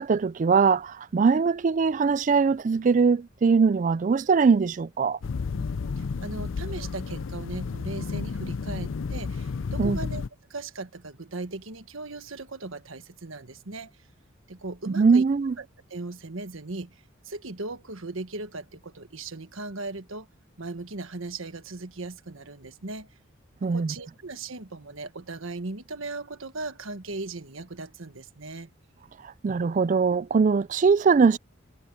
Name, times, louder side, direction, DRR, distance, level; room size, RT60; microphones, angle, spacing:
voice 1, 0.0-5.2 9.8-10.0 14.9-15.5 23.6-23.9 29.2-31.4, right 5 dB, 40° right, 0.3 m, -21 dB
sound 1, 5.2-10.3, left 5 dB, 70° left, 0.5 m, -32 dB
voice 2, 5.5-10.2 10.5-13.9 14.5-15.2 15.6-15.7 15.9-17.0 17.2-20.3 20.6-23.1 23.6-28.7, right 3 dB, 80° right, 1.5 m, -38 dB
head